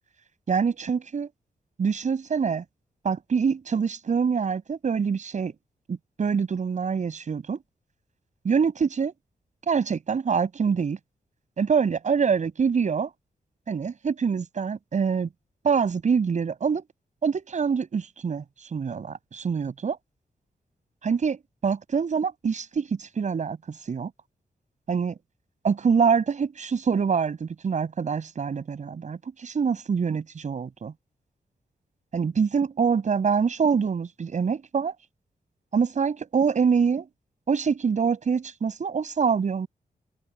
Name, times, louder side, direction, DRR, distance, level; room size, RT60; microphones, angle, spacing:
voice 1, 0.5-1.3 1.8-2.6 3.0-5.5 5.9-7.6 8.4-9.1 9.7-11.0 11.6-13.1 13.7-15.3 15.6-16.8 17.2-18.4 18.7-20.0 21.0-24.1 24.9-25.2 25.6-30.9 32.1-34.9 35.7-37.1 37.5-39.7, right 6 dB, 50° right, 8.0 m, -25 dB
open air
wide cardioid pair, 175°, 16 cm